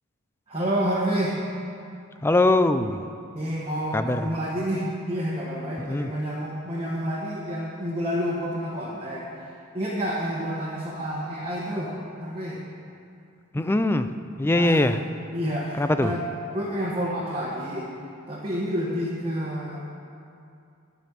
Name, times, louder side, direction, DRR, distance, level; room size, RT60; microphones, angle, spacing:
voice 1, 0.5-1.4 3.3-12.6 13.6-13.7 14.5-14.9 15.3-16.2 16.5-17.9 18.3-19.8, equal, 25° right, -6 dB, 1.2 m, -29 dB
voice 2, 2.2-3.0 3.9-4.3 5.8-6.1 13.5-14.1 14.4-15.0 15.8-16.1, left 2 dB, 10° left, 10 dB, 0.3 m, -22 dB
12.5 x 5.3 x 7.5 m, 2.5 s
head